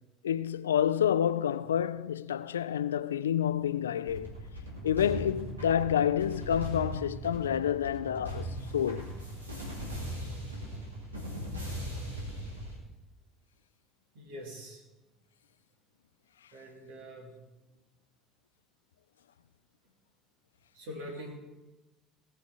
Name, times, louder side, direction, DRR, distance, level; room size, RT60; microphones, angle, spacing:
voice 1, 0.2-4.3 4.8-8.5 8.7-9.1, left 9 dB, 80° left, 0.3 m, -28 dB
sound 1, 4.0-12.7, right 1 dB, 85° right, 2.4 m, -39 dB
voice 2, 14.1-14.8 16.5-17.3 20.7-21.4, equal, 70° right, 2.9 m, -44 dB
18.5 x 7.0 x 4.8 m
figure-of-eight pair, 60°, 0 cm